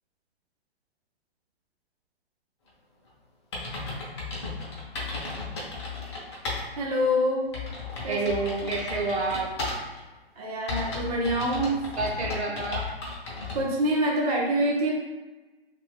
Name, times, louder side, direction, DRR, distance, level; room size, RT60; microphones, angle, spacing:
sound 1, 3.1-3.2 3.5-6.6 7.0-7.1 7.5-10.0 10.7-13.6, left 3 dB, 25° left, 0.6 m, -34 dB
voice 1, 6.8-7.4 8.0-8.2 10.4-11.8 13.5-14.9, equal, 40° right, -2 dB, 0.5 m, -25 dB
voice 2, 8.1-9.5 10.7-10.8 12.0-12.9, right 3 dB, 85° right, -2 dB, 0.9 m, -29 dB
2.5 x 2.5 x 3.3 m, 1.2 s
hypercardioid pair, 150°, 32 cm